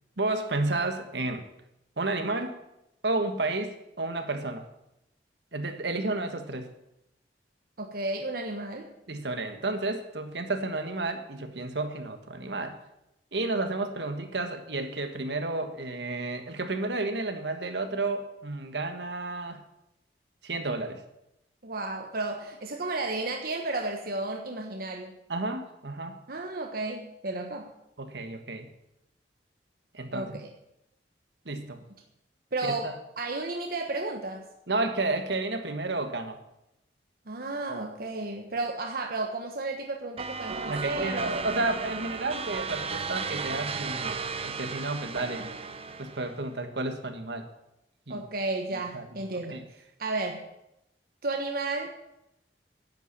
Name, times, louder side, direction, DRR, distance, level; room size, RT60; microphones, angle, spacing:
voice 1, 0.2-1.4 2.0-2.6 3.0-4.6 5.5-6.7 9.1-12.8 13.3-19.6 20.4-21.0 25.3-26.2 28.0-28.7 29.9-30.4 31.4-31.8 32.6-33.0 34.7-36.4 40.6-44.2 44.4-45.5 46.0-47.5 48.1-48.2 48.7-49.0 49.5-49.6, right 2 dB, 75° right, 7 dB, 1.6 m, -31 dB
voice 2, 7.8-8.9 21.6-25.1 26.3-27.7 30.1-30.5 32.5-34.4 37.3-41.6 45.4-45.5 48.1-49.6 50.0-50.4 51.2-51.9, right 2 dB, 55° right, 3 dB, 1.2 m, -33 dB
sound 1, 40.2-46.4, right 5 dB, 35° right, 0.8 m, -35 dB
10.5 x 8.2 x 8.5 m, 0.85 s
head